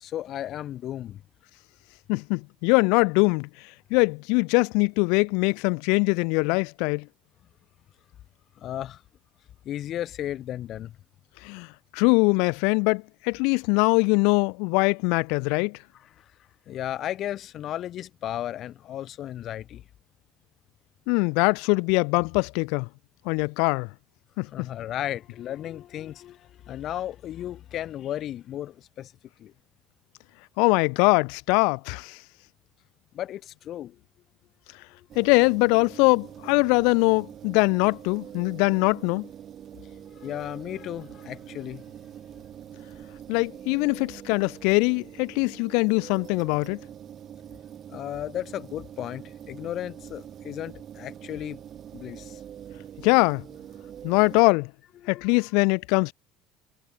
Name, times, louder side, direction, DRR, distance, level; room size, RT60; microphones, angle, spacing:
voice 1, 0.0-1.2 8.6-9.0 9.6-10.9 16.2-16.3 16.7-19.8 24.5-29.1 29.4-29.5 33.1-34.0 34.9-35.1 40.1-41.8 47.9-51.6 51.9-52.4 55.0-55.3, left 12 dB, 50° left, 0.8 m, -34 dB
voice 2, 2.1-3.5 3.9-7.1 11.4-11.7 11.9-15.8 21.1-22.9 23.2-23.9 24.4-24.7 30.6-32.2 35.2-39.3 43.3-46.8 53.0-53.4 54.0-54.7 55.1-56.1, left 34 dB, 80° left, 0.8 m, -22 dB
sound 1, 35.1-54.4, right 10 dB, 40° right, 5.7 m, -44 dB
cardioid pair, 125°, 0 cm